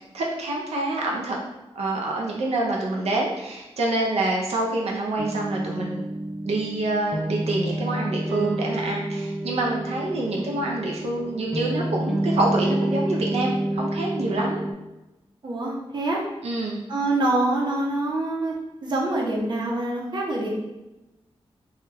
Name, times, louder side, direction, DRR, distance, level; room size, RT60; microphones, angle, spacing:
voice 1, 0.1-1.4 1.8-6.0 6.4-14.6 16.4-16.8, right 2 dB, 90° right, -2 dB, 0.5 m, -26 dB
sound 1, 5.2-14.7, right 1 dB, ahead, 0.3 m, -29 dB
voice 2, 15.4-16.2 16.9-20.5, right 2 dB, 45° right, -3 dB, 0.7 m, -25 dB
3.1 x 2.3 x 3.3 m, 0.99 s
wide cardioid pair, 140°, 10 cm